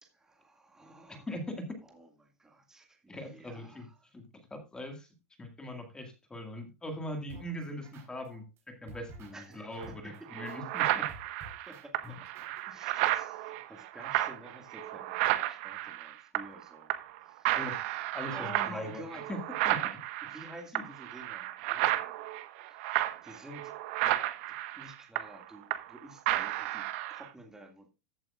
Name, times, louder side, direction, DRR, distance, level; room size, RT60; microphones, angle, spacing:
voice 1, 0.0-1.3 1.8-4.1 9.3-10.1 11.7-16.9 17.2-17.6 18.3-19.3 20.2-22.3 22.7-23.7 24.0-24.2 24.7-27.9, right 1 dB, 5° right, 2.0 m, -51 dB
voice 2, 1.1-1.6 3.1-3.9 4.1-4.2 4.5-5.1 5.4-11.1 12.0-12.2 17.5-17.8 18.1-19.0 19.3-19.4 19.6-19.8 20.7-20.8, left 1 dB, 10° left, 2.0 m, -41 dB
sound 1, 7.3-8.6 8.9-12.6, right 3 dB, 30° right, 4.6 m, -51 dB
sound 2, 9.8-9.9 10.3-16.6 16.9-17.2 17.5-26.0 26.3-27.3, right 15 dB, 55° right, 1.2 m, -32 dB
14.5 x 8.6 x 2.4 m
supercardioid pair, 145°, 8 cm